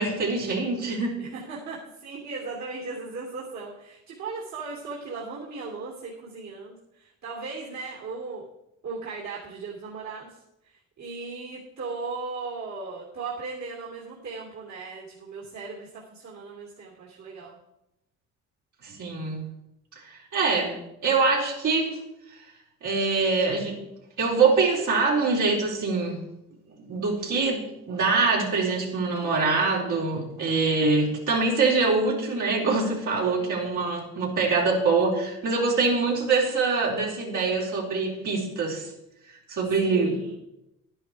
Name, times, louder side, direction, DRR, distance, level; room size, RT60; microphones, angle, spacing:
voice 1, 0.0-1.2 18.8-19.5 20.0-22.0 22.8-23.8 24.2-26.2 26.8-38.9 39.5-40.2, right 4 dB, 80° right, -3 dB, 4.1 m, -24 dB
voice 2, 1.2-8.4 8.8-17.6 33.0-33.6 39.8-40.3, right 4 dB, 65° right, -4 dB, 3.0 m, -37 dB
11.5 x 10.5 x 4.7 m, 0.85 s
cardioid pair, 90°, 30 cm